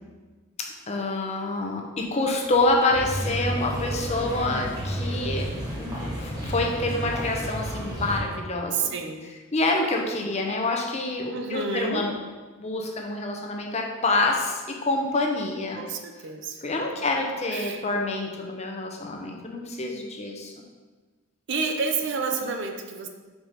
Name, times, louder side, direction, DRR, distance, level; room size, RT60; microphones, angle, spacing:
voice 1, 0.6-5.5 5.8-8.9 9.5-12.1 12.6-15.8 16.6-20.6, left 2 dB, 30° left, 1 dB, 0.7 m, -27 dB
sound 1, 2.9-8.2, equal, 20° right, 1.3 m, -31 dB
voice 2, 8.7-9.2 11.3-12.1 15.8-16.6 17.5-17.8 21.5-23.1, right 4 dB, 55° right, 5 dB, 0.6 m, -29 dB
4.7 x 4.0 x 5.1 m, 1.3 s
head